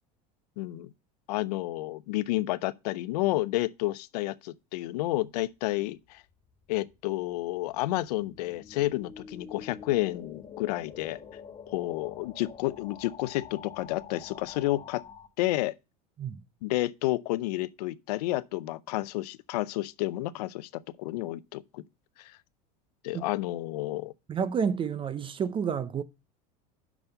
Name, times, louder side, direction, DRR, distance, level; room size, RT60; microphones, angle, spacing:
voice 1, 0.6-0.9 1.3-6.2 6.7-11.2 11.7-15.0 15.4-15.7 16.6-21.8 22.2-22.4 23.0-24.1, left 17 dB, 80° left, 0.5 m, -30 dB
sound 1, 6.0-15.3, left 6 dB, 25° left, 1.6 m, -47 dB
voice 2, 24.3-26.0, right 7 dB, 25° right, 0.6 m, -30 dB
6.1 x 5.3 x 6.7 m
supercardioid pair, 115°, 20 cm